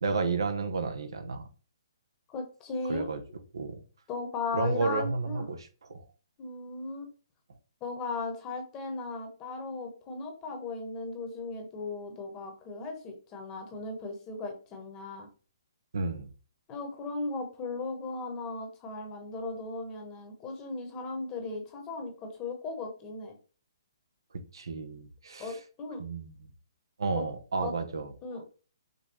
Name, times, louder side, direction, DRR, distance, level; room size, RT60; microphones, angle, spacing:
voice 1, 0.0-1.4 2.9-3.2 3.5-3.8 4.5-6.0 15.9-16.3 24.5-25.6 26.0-26.5 27.0-28.1, right 4 dB, 80° right, 0.9 m, -32 dB
voice 2, 2.3-3.1 4.1-5.5 6.4-7.1 7.8-15.3 16.7-23.4 25.4-26.0 27.1-27.2 27.6-27.7 28.2-28.4, left 3 dB, 20° left, 1.2 m, -37 dB
5.5 x 2.3 x 4.2 m
hypercardioid pair, 150°, 2 cm